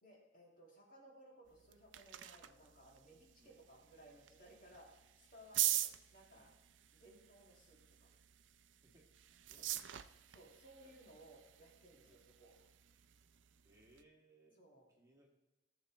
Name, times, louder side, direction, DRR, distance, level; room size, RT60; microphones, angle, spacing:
voice 1, 0.0-4.9 5.2-5.8 6.1-6.5 6.9-8.2 9.6-9.7 10.3-12.7 14.6-14.9, right 1 dB, 50° left, -2 dB, 2.1 m, -61 dB
sound 1, 1.5-14.0, right 14 dB, 90° right, 0.5 m, -45 dB
voice 2, 9.5-10.1 10.8-10.9 12.0-12.2 13.6-14.6 14.9-15.3, right 1 dB, 20° right, -2 dB, 1.8 m, -68 dB
17.0 x 7.2 x 3.0 m, 1.1 s
head